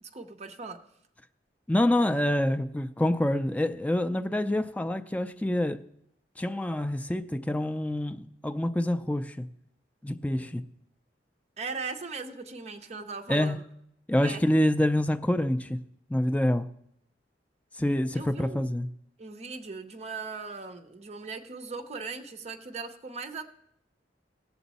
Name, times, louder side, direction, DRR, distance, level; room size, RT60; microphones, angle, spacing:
voice 1, 0.0-0.8 11.6-13.6 14.2-14.4 18.1-18.7 19.2-23.4, right 4 dB, 40° right, 0.7 m, -39 dB
voice 2, 1.7-5.8 6.4-9.5 10.0-10.7 13.3-13.6 14.1-15.8 16.1-16.7 17.8-18.9, left 1 dB, 10° left, 0.4 m, -26 dB
17.5 x 7.0 x 4.1 m
head